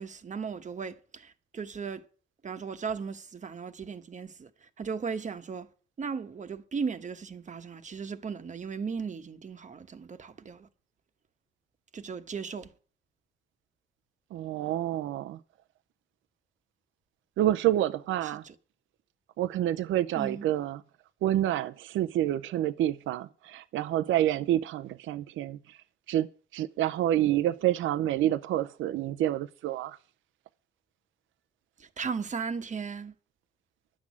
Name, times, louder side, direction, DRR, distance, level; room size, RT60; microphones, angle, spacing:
voice 1, 0.0-2.0 2.4-4.5 4.8-5.7 6.0-10.7 11.9-12.7 18.2-18.5 20.1-20.5 31.8-33.1, right 5 dB, 40° right, 1.1 m, -36 dB
voice 2, 14.3-15.4 17.4-18.4 19.4-20.8 21.2-25.8 26.1-26.3 26.5-30.0, right 13 dB, 80° right, 0.6 m, -28 dB
11.0 x 6.3 x 8.4 m
cardioid pair, 90°, 20 cm